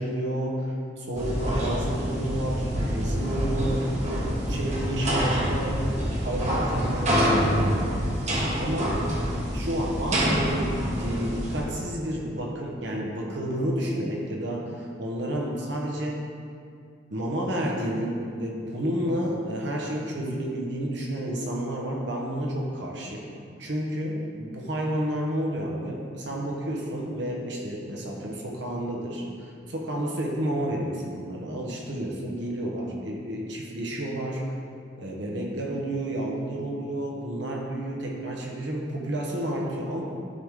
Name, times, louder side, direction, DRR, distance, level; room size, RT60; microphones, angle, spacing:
voice 1, 0.0-7.8 8.6-9.2 9.5-16.2 17.1-23.3 23.6-34.5 35.0-40.0, right 1 dB, 65° right, -1 dB, 1.3 m, -30 dB
sound 1, 1.1-11.6, equal, 35° right, 1.3 m, -26 dB
11.5 x 4.9 x 3.8 m, 2.3 s
head